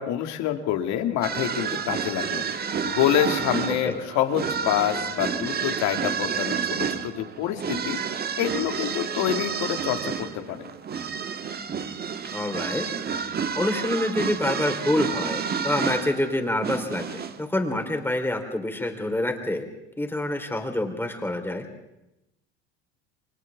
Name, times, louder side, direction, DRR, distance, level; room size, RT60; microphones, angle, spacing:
voice 1, 0.0-2.4 2.8-8.0 8.4-10.7, left 11 dB, 55° left, 6 dB, 2.4 m, -27 dB
sound 1, 1.2-17.4, right 6 dB, 30° right, 1.5 m, -30 dB
voice 2, 3.7-4.0 12.3-12.9 13.5-19.7 20.0-21.7, left 1 dB, 5° left, 4 dB, 3.8 m, -27 dB
29.5 x 24.0 x 3.6 m, 0.90 s
hypercardioid pair, 80°, 34 cm